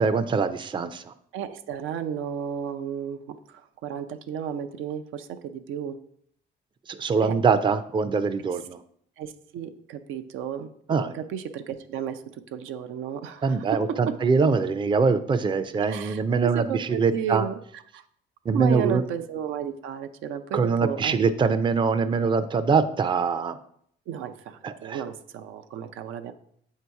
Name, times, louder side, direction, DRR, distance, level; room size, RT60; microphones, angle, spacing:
voice 1, 0.0-1.1 6.9-8.8 10.9-11.1 13.4-17.4 18.5-19.0 20.5-23.6 24.6-25.0, right 5 dB, 25° right, 10 dB, 0.4 m, -23 dB
voice 2, 1.3-6.0 7.2-7.4 9.2-10.7 11.1-12.2 12.5-14.1 15.9-17.6 17.9-18.0 18.5-21.2 24.1-26.3, right 8 dB, 90° right, 8 dB, 0.5 m, -33 dB
7.6 x 2.8 x 4.6 m, 0.66 s
cardioid pair, 90°, 20 cm